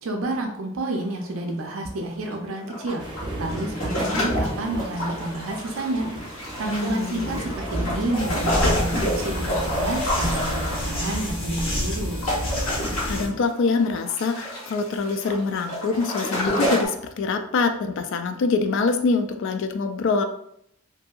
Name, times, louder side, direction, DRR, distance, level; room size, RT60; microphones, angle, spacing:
voice 1, 0.0-6.1 6.6-12.2, right 2 dB, 75° right, 2 dB, 0.5 m, -30 dB
sound 1, 0.8-1.0 1.3-1.4 2.3-16.9, left 1 dB, 80° left, 1.0 m, -29 dB
sound 2, 3.0-11.2, right 1 dB, 25° right, 0.6 m, -34 dB
voice 2, 6.6-7.2 13.0-20.2, left 4 dB, 65° left, 7 dB, 0.3 m, -24 dB
sound 3, 8.1-13.3, equal, 25° left, 0.7 m, -28 dB
2.7 x 2.6 x 2.3 m, 0.72 s
head